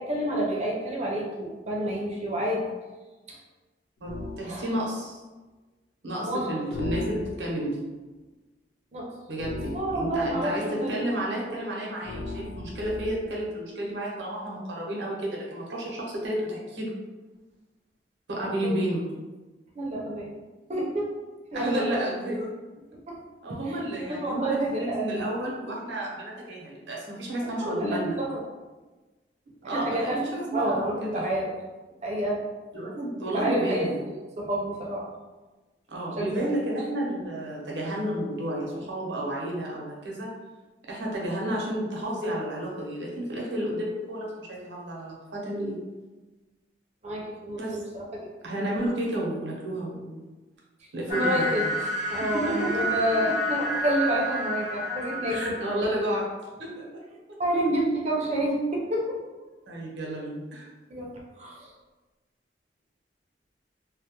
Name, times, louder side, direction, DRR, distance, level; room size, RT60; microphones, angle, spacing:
voice 1, 0.0-2.7 3.3-3.4 4.4-4.7 6.3-6.5 8.9-9.1 9.7-11.0 11.4-11.7 18.4-18.8 19.8-20.3 20.7-21.1 21.5-22.0 23.1-23.2 23.7-25.3 27.4-28.4 29.7-30.2 30.5-31.5 32.0-32.4 33.3-35.1 36.2-36.5 47.0-48.3 51.1-51.7 52.1-55.6 57.4-59.2 60.9-61.1 61.4-61.7, right 1 dB, 40° right, -2 dB, 0.5 m, -29 dB
sound 1, 4.0-4.5 6.7-7.7 9.4-10.5 12.0-13.4, left 2 dB, 80° left, 0.3 m, -37 dB
voice 2, 4.0-5.2 6.0-7.8 9.3-16.9 18.3-19.0 21.5-22.5 23.4-28.1 29.6-31.3 32.7-34.0 35.9-40.3 40.9-45.8 47.6-47.8 48.4-50.2 50.9-51.6 52.3-52.8 53.1-53.2 55.3-56.2 56.6-57.0 59.7-60.7, right 1 dB, 90° right, -3 dB, 0.7 m, -31 dB
sound 2, 51.1-56.2, equal, 40° left, 0.7 m, -30 dB
2.2 x 2.0 x 2.8 m, 1.2 s
head